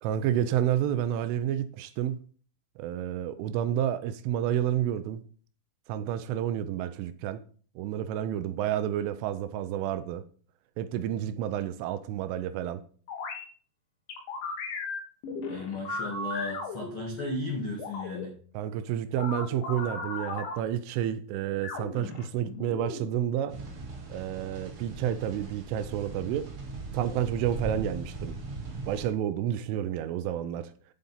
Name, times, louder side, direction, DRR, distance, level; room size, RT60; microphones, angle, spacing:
voice 1, 0.0-2.2 2.8-5.2 5.9-7.4 7.8-10.2 10.8-12.8 18.5-23.6 24.1-26.5 26.9-28.4 28.9-30.7, right 10 dB, 80° right, 3.0 m, -30 dB
sound 1, 13.1-13.4 14.1-17.3 17.8-18.3 19.2-20.5 21.6-23.0, left 3 dB, 70° left, 4.2 m, -36 dB
voice 2, 15.5-18.3, left 2 dB, 85° left, 1.1 m, -35 dB
sound 2, 23.5-29.1, right 3 dB, 50° right, 2.1 m, -39 dB
9.3 x 7.6 x 5.6 m
omnidirectional pair, 5.9 m